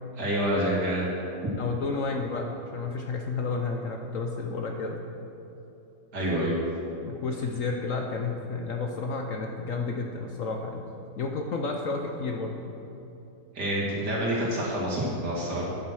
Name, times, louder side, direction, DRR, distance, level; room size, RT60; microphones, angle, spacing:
voice 1, 0.2-1.2 6.1-6.6 13.5-15.6, right 1 dB, 70° right, -5 dB, 2.9 m, -27 dB
voice 2, 1.6-5.0 7.0-10.8 11.2-12.7, left 4 dB, 60° left, 2 dB, 0.9 m, -31 dB
9.5 x 7.4 x 6.2 m, 3.0 s
omnidirectional pair, 1.9 m